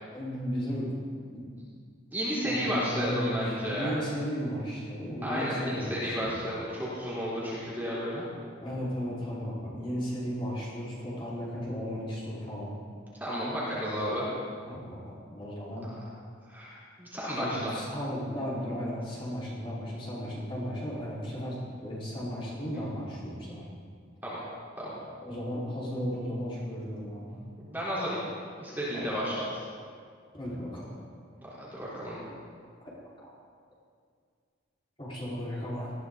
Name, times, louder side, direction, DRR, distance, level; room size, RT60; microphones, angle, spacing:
voice 1, 0.1-0.9 1.3-1.4 2.4-6.4 8.6-12.7 13.9-14.0 14.7-15.9 17.4-23.7 25.2-27.4 28.9-29.1 30.3-30.9 33.2-33.3 35.0-35.9, equal, 25° left, -8 dB, 4.8 m, -35 dB
voice 2, 2.1-3.9 5.2-8.2 13.2-14.3 15.9-16.0 16.5-17.8 24.2-24.4 24.8-24.9 27.6-28.2 28.6-29.6 31.4-32.2, equal, 10° right, -9 dB, 4.1 m, -32 dB
20.0 x 15.5 x 4.1 m, 2.1 s
head